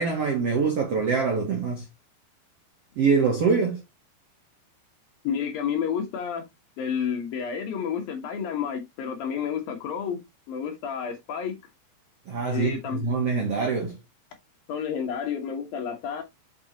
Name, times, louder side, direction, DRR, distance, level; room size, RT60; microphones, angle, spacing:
voice 1, 0.0-1.9 3.0-3.8 12.3-14.0, right 5 dB, 75° right, 1.4 m, -24 dB
voice 2, 5.2-6.5 6.8-10.2 10.5-11.6 12.5-13.0 14.7-16.2, left 7 dB, 65° left, 2.8 m, -30 dB
6.9 x 6.1 x 2.9 m
omnidirectional pair, 5.1 m